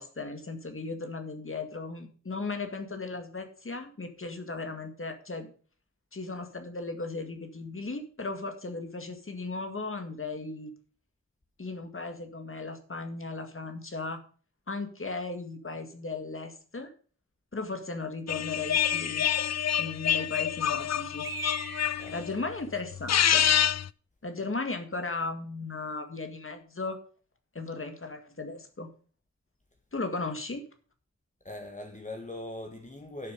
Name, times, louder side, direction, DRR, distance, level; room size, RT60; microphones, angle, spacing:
voice 1, 0.0-5.5 6.1-10.7 11.6-14.2 14.7-16.9 17.5-19.3 19.8-21.3 22.1-23.5 24.2-27.0 27.5-28.9 29.9-30.6, left 3 dB, 45° left, 2.0 m, -36 dB
sound 1, 18.3-22.4 22.9-23.9, left 9 dB, 65° left, 0.4 m, -27 dB
Bird, 18.7-19.6 21.2-22.2, right 4 dB, 45° right, 1.8 m, -40 dB
voice 2, 31.4-33.3, left 1 dB, 25° left, 1.5 m, -41 dB
11.5 x 7.0 x 5.2 m
wide cardioid pair, 75°, 29 cm